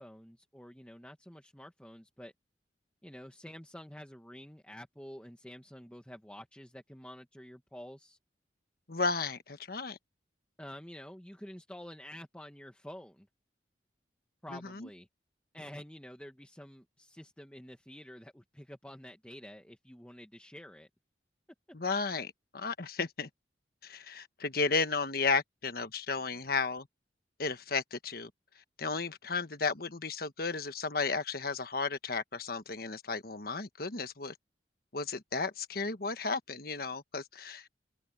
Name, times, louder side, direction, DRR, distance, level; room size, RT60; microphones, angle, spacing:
voice 1, 0.0-2.3 3.0-8.2 10.6-13.3 14.4-15.1 15.5-20.9, equal, 5° left, 1.6 m, -49 dB
voice 2, 8.9-10.0 14.5-14.9 21.7-23.3 23.8-26.9 27.4-28.3 28.8-34.3 34.9-37.7, left 4 dB, 55° left, 1.4 m, -34 dB
head